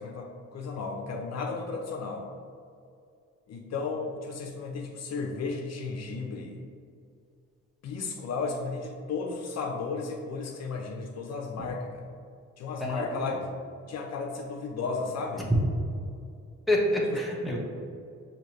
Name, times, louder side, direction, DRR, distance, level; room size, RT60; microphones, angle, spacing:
voice 1, 0.0-2.3 3.5-6.6 7.8-12.1 12.6-13.5 13.9-15.5 17.4-17.6, left 4 dB, 60° left, 1 dB, 0.6 m, -34 dB
voice 2, 12.8-13.3 16.7-17.6, left 1 dB, ahead, -4 dB, 1.0 m, -27 dB
6.3 x 2.7 x 3.0 m, 2.4 s
cardioid pair, 90°, 30 cm